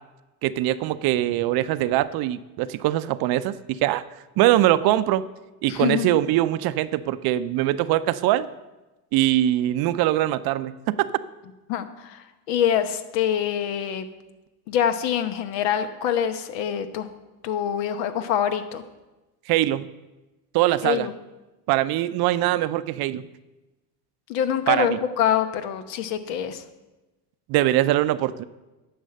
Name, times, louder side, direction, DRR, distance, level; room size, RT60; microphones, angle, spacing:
voice 1, 0.4-4.0 4.4-5.2 5.6-8.5 9.1-11.1 19.5-19.9 20.5-21.1 21.7-23.2 24.7-25.0 27.5-28.4, right 14 dB, 50° right, 14 dB, 0.5 m, -22 dB
voice 2, 5.7-6.2 11.7-14.1 14.7-17.1 17.4-18.8 20.8-21.1 24.3-26.6, left 9 dB, 80° left, 10 dB, 1.1 m, -25 dB
10.0 x 6.1 x 6.6 m, 1.1 s
supercardioid pair, 105°, 48 cm